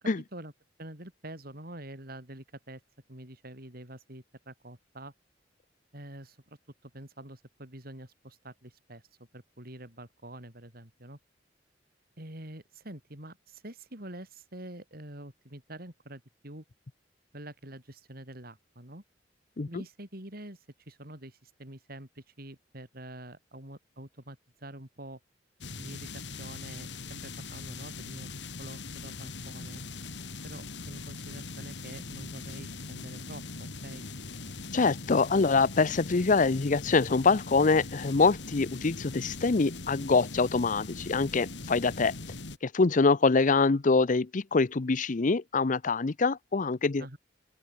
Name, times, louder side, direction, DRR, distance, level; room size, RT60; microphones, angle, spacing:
voice 1, 0.8-2.8 3.1-5.1 5.9-6.6 6.8-9.0 9.3-11.2 12.2-16.6 17.3-19.0 19.7-25.2 25.8-28.3 28.6-29.8 30.4-34.0 47.0-47.2, right 1 dB, 55° right, 6.7 m, -46 dB
sound 1, 25.6-42.6, left 3 dB, 75° left, 2.3 m, -41 dB
voice 2, 34.7-42.1 42.6-47.1, left 4 dB, 45° left, 0.7 m, -25 dB
open air
head